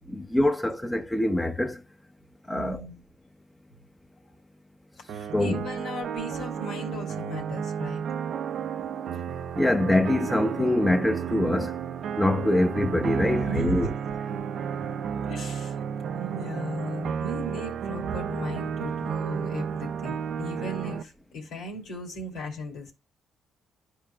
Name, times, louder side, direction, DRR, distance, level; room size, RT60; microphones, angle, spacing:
voice 1, 0.1-1.8 2.5-2.8 5.3-5.6 9.5-11.8 12.2-13.9, left 1 dB, 10° left, 0.8 m, -24 dB
voice 2, 2.5-3.0 5.1-8.0 13.2-13.9 15.2-15.8 16.0-22.9, equal, 85° left, 2.6 m, -36 dB
sound 1, 5.1-21.0, right 7 dB, 70° right, 0.5 m, -32 dB
12.0 x 4.7 x 2.3 m
cardioid pair, 90°, 0 cm